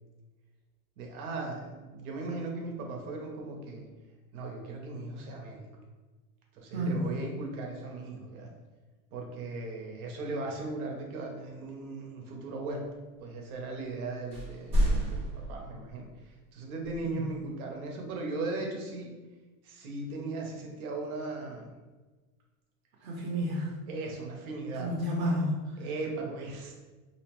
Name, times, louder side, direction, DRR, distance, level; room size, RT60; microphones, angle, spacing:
voice 1, 1.0-3.9 4.3-5.7 6.5-8.5 9.1-12.9 13.2-19.1 19.6-21.7 23.9-24.9 25.8-26.7, right 3 dB, 90° right, 1 dB, 0.8 m, -38 dB
voice 2, 6.7-7.1 17.0-17.2 23.0-23.8 24.7-25.9, equal, 60° right, -2 dB, 0.7 m, -31 dB
sound 1, 14.3-16.0 16.8-17.0, equal, 15° right, 0.6 m, -29 dB
2.7 x 2.0 x 2.9 m, 1.3 s
supercardioid pair, 155°, 42 cm